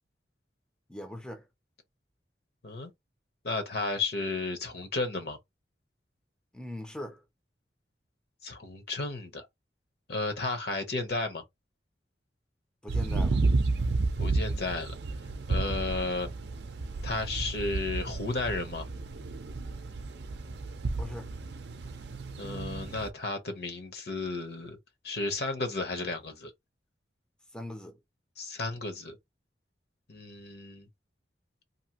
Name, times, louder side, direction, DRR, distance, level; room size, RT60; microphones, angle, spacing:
voice 1, 0.9-1.4 6.5-7.2 12.8-13.4 21.0-21.3 27.5-28.0, left 1 dB, 5° left, 0.4 m, -40 dB
voice 2, 3.4-5.4 8.4-9.5 10.1-11.4 14.2-14.9 15.5-16.3 17.0-18.8 22.4-24.8 25.0-26.5 28.4-29.2 30.1-30.9, left 3 dB, 60° left, 0.8 m, -33 dB
sound 1, 12.9-23.1, right 3 dB, 65° right, 0.5 m, -32 dB
2.7 x 2.5 x 2.8 m
head